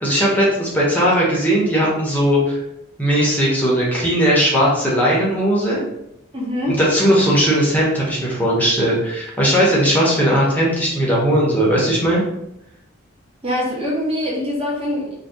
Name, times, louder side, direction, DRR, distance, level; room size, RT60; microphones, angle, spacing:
voice 1, 0.0-2.6 3.0-5.8 6.7-12.2, equal, 10° left, -5 dB, 0.7 m, -18 dB
voice 2, 6.3-6.8 13.4-15.2, left 1 dB, 25° right, -4 dB, 0.6 m, -23 dB
2.6 x 2.2 x 3.4 m, 0.83 s
head